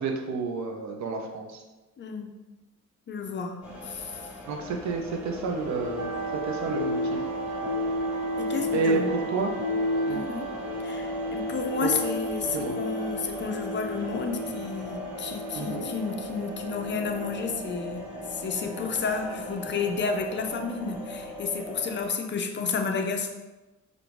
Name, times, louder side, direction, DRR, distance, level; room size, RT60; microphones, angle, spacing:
voice 1, 0.0-1.6 4.5-6.1 6.4-7.2 8.7-9.0 9.3-9.5 10.1-10.2 11.8-11.9 12.5-12.8 15.5-15.9, right 4 dB, 65° right, 2 dB, 0.7 m, -30 dB
voice 2, 2.0-2.3 3.1-4.2 8.4-9.1 10.1-10.5 10.8-18.0 18.3-23.3, left 5 dB, 40° left, 4 dB, 0.6 m, -31 dB
sound 1, 3.6-22.1, left 1 dB, 5° right, 1.2 m, -39 dB
sound 2, 5.5-19.6, equal, 35° right, 1.3 m, -33 dB
5.1 x 2.5 x 3.0 m, 1.1 s
cardioid pair, 90°, 30 cm